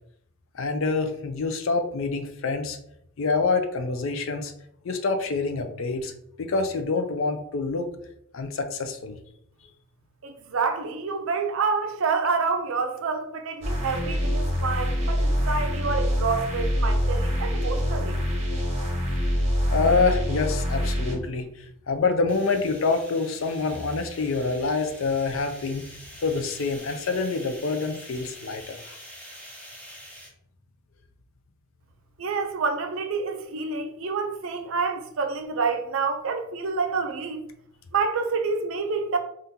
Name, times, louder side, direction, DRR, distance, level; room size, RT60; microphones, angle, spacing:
voice 1, 0.5-2.8 3.2-4.5 4.8-6.1 6.4-7.9 8.3-9.2 19.7-21.5 21.9-25.8 26.2-28.9, left 4 dB, 65° left, 0.4 m, -26 dB
voice 2, 10.2-18.2 32.2-37.4 37.9-39.2, right 4 dB, 65° right, 0.5 m, -28 dB
sound 1, 13.6-21.2, equal, 30° right, 1.1 m, -25 dB
sound 2, 22.3-30.3, equal, 5° left, 0.6 m, -46 dB
3.6 x 2.5 x 2.7 m
head